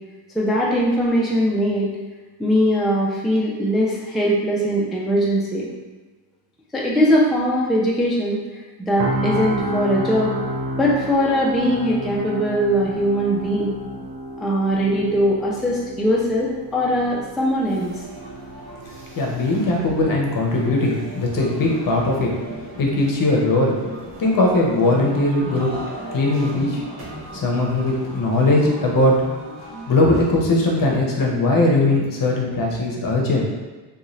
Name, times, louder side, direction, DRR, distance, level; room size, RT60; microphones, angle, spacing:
voice 1, 0.3-1.9 2.4-5.7 6.7-8.4 8.8-10.3 10.8-13.7 14.4-17.9, equal, ahead, -5 dB, 0.3 m, -20 dB
sound 1, 9.0-23.0 23.3-23.6, equal, 65° right, 0.7 m, -31 dB
sound 2, 17.6-30.4, equal, 80° right, 1.0 m, -37 dB
voice 2, 19.2-22.3 22.8-23.8 24.2-25.7 26.1-26.8 27.4-29.2 29.9-33.5, left 2 dB, 50° left, -1 dB, 0.7 m, -19 dB
2.5 x 2.3 x 3.0 m, 1.3 s
cardioid pair, 95°, 44 cm